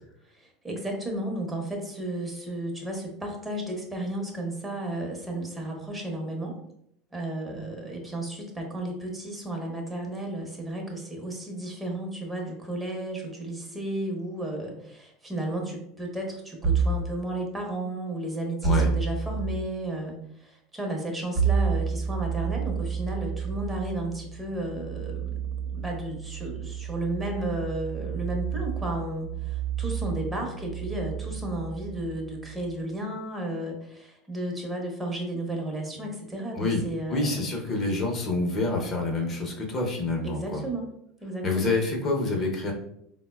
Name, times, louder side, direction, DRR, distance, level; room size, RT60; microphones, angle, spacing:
voice 1, 0.3-6.6 7.1-25.4 25.7-37.4 40.2-40.9 41.2-41.7, right 1 dB, 15° right, 1 dB, 0.8 m, -33 dB
sound 1, 16.6-17.1 18.6-19.6 21.4-32.7, right 6 dB, 50° right, 0.6 m, -30 dB
voice 2, 37.1-40.6 41.4-42.7, left 2 dB, 40° left, 1 dB, 0.6 m, -27 dB
3.6 x 2.1 x 2.2 m, 0.74 s
hypercardioid pair, 90°, 0 cm